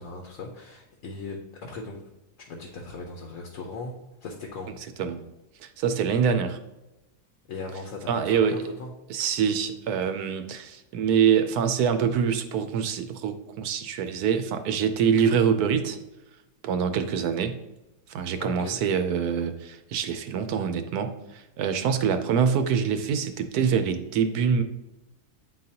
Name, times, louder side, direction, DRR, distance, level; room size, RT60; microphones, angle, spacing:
voice 1, 0.0-2.1 2.4-3.9 4.2-4.7 7.5-8.9 18.4-18.8, left 3 dB, 60° left, 1 dB, 1.1 m, -38 dB
voice 2, 5.6-6.6 8.1-8.6 9.1-16.0 16.6-17.5 18.1-24.6, right 7 dB, 75° right, 8 dB, 1.0 m, -25 dB
9.6 x 3.9 x 2.8 m, 0.97 s
omnidirectional pair, 1.7 m